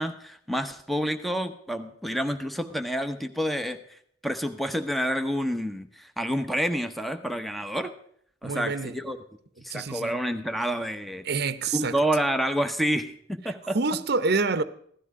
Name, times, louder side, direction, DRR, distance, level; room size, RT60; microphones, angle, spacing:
voice 1, 0.0-3.8 4.2-7.9 8.4-9.2 9.6-11.2 11.7-13.8, equal, ahead, 0.9 m, -28 dB
voice 2, 8.4-9.0 9.7-10.2 11.2-12.0 13.5-14.6, right 4 dB, 60° right, 0.8 m, -27 dB
16.0 x 12.5 x 4.8 m
head